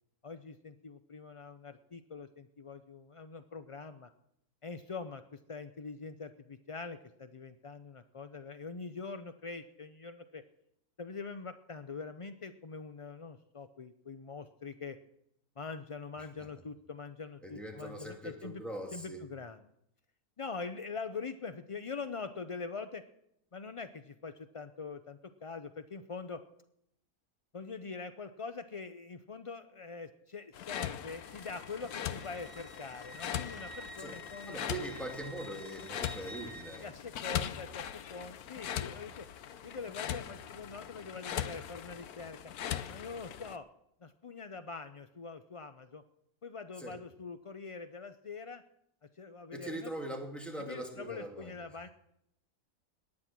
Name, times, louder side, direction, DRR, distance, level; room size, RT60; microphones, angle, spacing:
voice 1, 0.2-4.1 4.6-10.4 11.0-15.0 15.6-18.6 18.9-19.6 20.4-23.0 23.5-26.4 27.5-34.6 36.8-39.3 39.6-42.5 42.9-43.7 44.0-46.0 46.4-48.6 49.2-49.9 50.6-51.9, left 4 dB, 55° left, 10 dB, 0.3 m, -44 dB
voice 2, 17.4-19.2 34.0-34.2 34.4-36.9 46.8-47.0 49.5-51.6, right 1 dB, ahead, 1 dB, 2.5 m, -42 dB
sound 1, 30.5-43.6, left 10 dB, 85° left, 1.3 m, -40 dB
Wind instrument woodwind instrument, 31.1-36.8, right 1 dB, 30° right, 0.8 m, -50 dB
18.0 x 11.0 x 6.0 m, 0.76 s
omnidirectional pair, 1.5 m